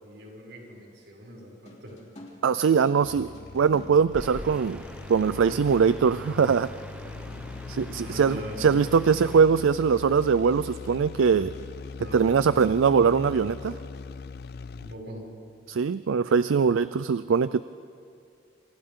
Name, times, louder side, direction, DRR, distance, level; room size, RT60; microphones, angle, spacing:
voice 1, 0.0-1.9 5.4-6.0 7.9-8.6 12.0-12.4 14.8-15.2, equal, 65° right, -3 dB, 6.7 m, -42 dB
sound 1, 1.7-4.8 5.7-5.8 8.0-14.1, left 1 dB, 35° left, 3.4 m, -51 dB
voice 2, 2.4-3.3 3.5-4.8 5.1-6.7 7.7-11.5 12.1-13.8 15.7-17.6, right 6 dB, 85° right, 15 dB, 0.4 m, -22 dB
sound 2, 3.0-15.1, left 4 dB, 50° left, 0.4 m, -41 dB
sound 3, 4.1-9.4, equal, 5° right, 0.9 m, -43 dB
27.5 x 27.5 x 3.8 m, 2.4 s
head